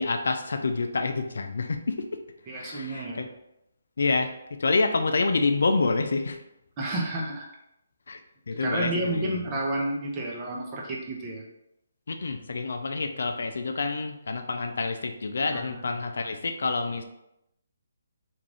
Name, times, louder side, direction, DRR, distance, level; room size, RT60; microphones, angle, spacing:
voice 1, 0.0-2.2 2.5-3.3 4.0-6.4 8.1-8.2 8.5-9.4 12.1-17.0, left 3 dB, 70° left, 6 dB, 0.3 m, -27 dB
voice 2, 2.5-3.3 6.8-7.5 8.6-11.4 15.5-16.1, right 1 dB, 25° right, -2 dB, 0.6 m, -31 dB
2.5 x 2.3 x 3.3 m, 0.85 s
hypercardioid pair, 150°, 0 cm